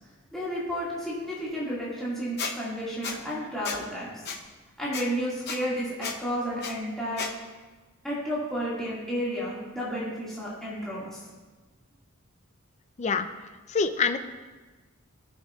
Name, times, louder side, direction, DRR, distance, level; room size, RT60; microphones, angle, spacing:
voice 1, 0.3-4.1 4.8-7.2 8.0-11.2, equal, ahead, -9 dB, 1.9 m, -32 dB
Squeak, 2.4-2.5 3.0-3.2 3.6-3.8 4.3-4.4 4.9-5.0 5.5-5.6 6.0-6.2 6.6-6.7 7.2-7.3, left 5 dB, 50° left, 0.8 m, -32 dB
voice 2, 13.7-14.2, left 5 dB, 30° left, 9 dB, 0.4 m, -25 dB
16.5 x 6.5 x 2.4 m, 1.3 s
head